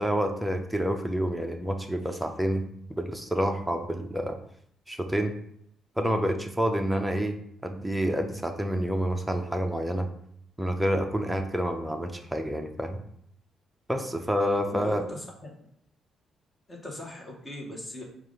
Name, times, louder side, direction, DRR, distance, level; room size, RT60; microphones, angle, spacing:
voice 1, 0.0-4.4 4.9-5.3 6.0-7.4 7.6-10.1 10.6-13.0 13.9-15.0, equal, 5° right, 4 dB, 0.6 m, -28 dB
voice 2, 14.7-15.7 16.7-18.0, left 1 dB, 25° left, -2 dB, 1.2 m, -39 dB
4.7 x 2.4 x 3.8 m, 0.70 s
cardioid pair, 90°, 0 cm